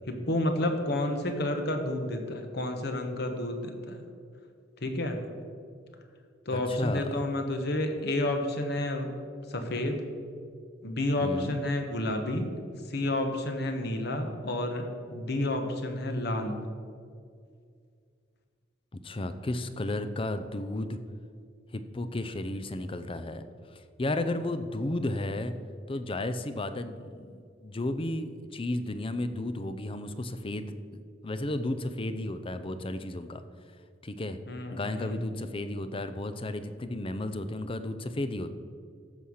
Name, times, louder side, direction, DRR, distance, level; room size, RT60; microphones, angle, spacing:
voice 1, 0.1-4.1 4.8-5.2 6.5-9.1 9.5-10.0 10.8-12.6 12.9-16.6 34.5-35.2, left 1 dB, 65° left, 5 dB, 1.4 m, -30 dB
voice 2, 6.5-7.0 11.2-11.5 18.9-21.0 21.7-23.4 23.7-25.5 25.9-33.4 34.0-34.4 34.7-38.5, left 1 dB, 30° left, 10 dB, 0.6 m, -33 dB
14.5 x 5.6 x 6.5 m, 2.2 s
head